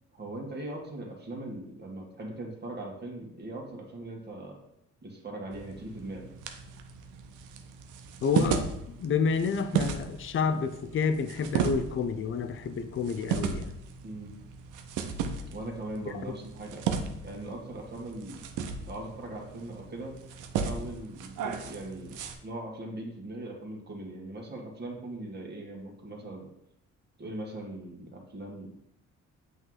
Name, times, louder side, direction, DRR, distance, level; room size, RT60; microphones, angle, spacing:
voice 1, 0.1-4.6 5.0-6.3 14.0-14.3 15.5-16.9 17.2-18.4 18.9-20.1 20.6-22.1 22.4-26.5 27.2-28.8, right 1 dB, 35° right, 1.7 m, -40 dB
sound 1, 5.5-22.3, right 6 dB, 90° right, 0.7 m, -35 dB
voice 2, 8.2-13.7 16.1-16.2, left 5 dB, 45° left, 0.6 m, -29 dB
7.9 x 3.1 x 3.9 m
cardioid pair, 90°, 30 cm